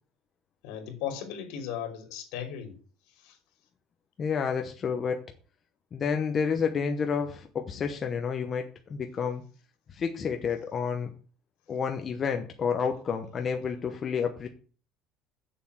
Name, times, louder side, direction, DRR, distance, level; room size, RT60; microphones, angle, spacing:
voice 1, 0.6-2.7 3.2-3.4, left 9 dB, 70° left, 5 dB, 3.1 m, -36 dB
voice 2, 4.2-5.2 5.9-9.4 9.9-11.1 11.7-14.5, left 6 dB, 25° left, 4 dB, 0.9 m, -30 dB
7.1 x 6.9 x 8.0 m, 0.39 s
cardioid pair, 180°, 0 cm